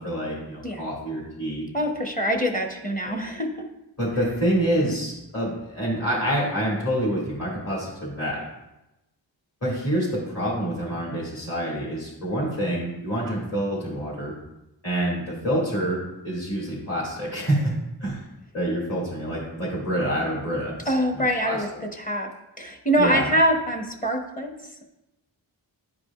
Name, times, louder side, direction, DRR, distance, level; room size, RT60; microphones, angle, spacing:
voice 1, 0.0-1.6 4.0-8.5 9.6-14.3 14.8-17.7 18.0-18.2 18.5-21.6 23.0-23.3, right 1 dB, 35° left, -7 dB, 2.4 m, -27 dB
voice 2, 1.7-3.7 20.9-22.3 22.6-24.5, equal, 20° left, 3 dB, 1.1 m, -24 dB
10.5 x 4.8 x 2.5 m, 0.93 s
cardioid pair, 50°, 45 cm